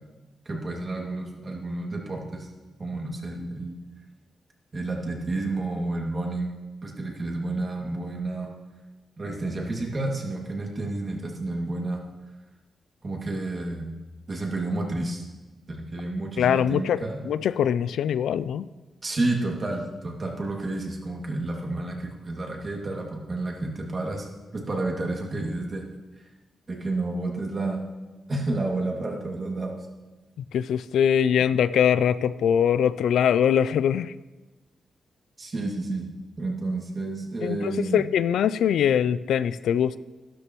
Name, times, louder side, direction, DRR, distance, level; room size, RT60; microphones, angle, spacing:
voice 1, 0.5-2.5 2.8-3.7 4.7-6.5 6.8-8.5 9.2-12.0 13.0-13.9 14.3-15.2 15.7-17.2 19.0-24.3 24.5-25.9 26.2-26.3 26.7-27.8 28.3-29.7 35.4-36.1 36.4-38.1, right 2 dB, 40° right, 0 dB, 2.3 m, -30 dB
voice 2, 16.4-18.6 30.5-34.1 37.4-40.0, left 8 dB, 90° left, 16 dB, 0.3 m, -22 dB
12.5 x 12.0 x 3.1 m, 1.2 s
cardioid pair, 90°, 0 cm